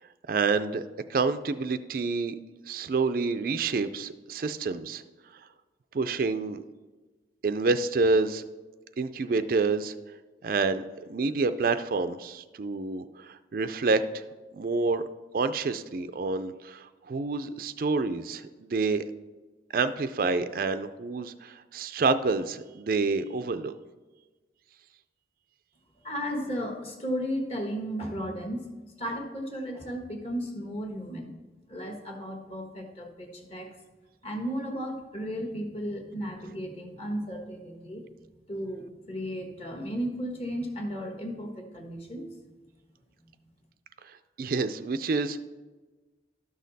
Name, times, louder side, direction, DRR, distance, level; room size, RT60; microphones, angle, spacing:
voice 1, 0.3-0.8 1.1-2.4 2.7-5.0 5.9-6.6 7.4-8.4 9.0-9.9 10.4-10.8 11.1-14.2 14.5-15.0 15.3-19.0 19.7-23.7 44.0-45.4, right 4 dB, 50° right, 11 dB, 0.4 m, -28 dB
voice 2, 26.0-28.6 29.0-31.3 31.7-33.7 34.2-38.0 38.5-42.4, equal, 35° left, 2 dB, 1.3 m, -34 dB
12.0 x 6.4 x 4.0 m, 1.3 s
head